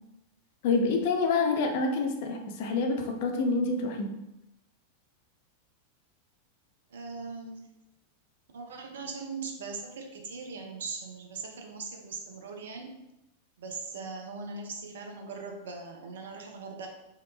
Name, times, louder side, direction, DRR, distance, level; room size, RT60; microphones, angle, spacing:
voice 1, 0.6-4.1, left 3 dB, 50° left, 3 dB, 0.3 m, -27 dB
voice 2, 6.9-7.7 8.5-13.0 13.6-16.9, right 4 dB, 60° right, 3 dB, 0.4 m, -40 dB
2.8 x 2.1 x 2.2 m, 0.92 s
figure-of-eight pair, 90°, 0 cm